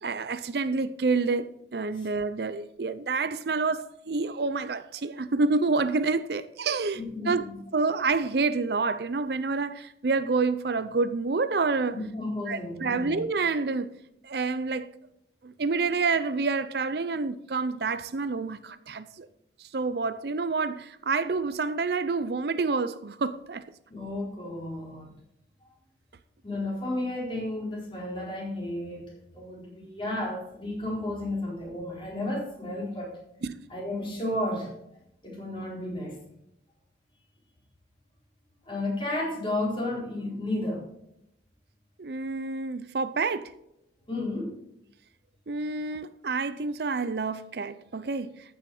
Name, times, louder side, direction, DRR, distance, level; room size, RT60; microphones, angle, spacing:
voice 1, 0.0-7.4 7.7-12.0 12.5-13.9 14.2-14.9 15.4-19.3 19.6-23.6 33.4-33.6 42.0-43.5 45.5-48.3, right 4 dB, 60° right, 0.5 m, -28 dB
voice 2, 6.9-7.6 11.9-13.2 23.9-25.1 25.6-25.7 26.4-33.2 33.7-34.7 35.2-36.2 38.6-40.8 44.1-44.6, left 1 dB, 30° left, 4.1 m, -32 dB
14.0 x 6.5 x 4.9 m
head